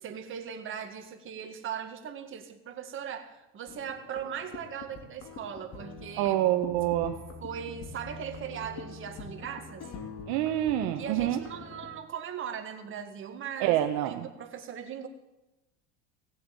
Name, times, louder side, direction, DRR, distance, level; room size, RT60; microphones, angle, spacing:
voice 1, 0.0-6.4 7.4-9.9 11.0-13.8 14.0-15.1, right 8 dB, 40° right, 5 dB, 2.0 m, -39 dB
sound 1, 3.7-12.0, left 3 dB, 45° left, 3.1 m, -45 dB
voice 2, 6.2-7.2 10.3-11.4 13.6-14.3, right 13 dB, 65° right, 7 dB, 1.1 m, -26 dB
17.5 x 7.8 x 9.1 m, 0.97 s
supercardioid pair, 120°, 33 cm